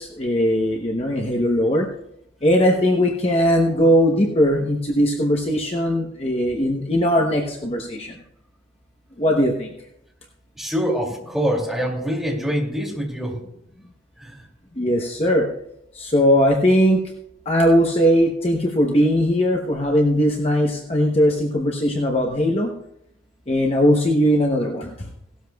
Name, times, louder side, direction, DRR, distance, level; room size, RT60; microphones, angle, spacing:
voice 1, 0.0-1.9 2.4-8.2 9.2-9.7 14.8-15.5 15.9-17.0 17.5-22.7 23.5-25.0, equal, 30° left, 1 dB, 0.9 m, -19 dB
voice 2, 10.6-13.4 14.2-14.4, equal, ahead, -3 dB, 2.7 m, -25 dB
17.0 x 12.5 x 2.3 m, 0.77 s
head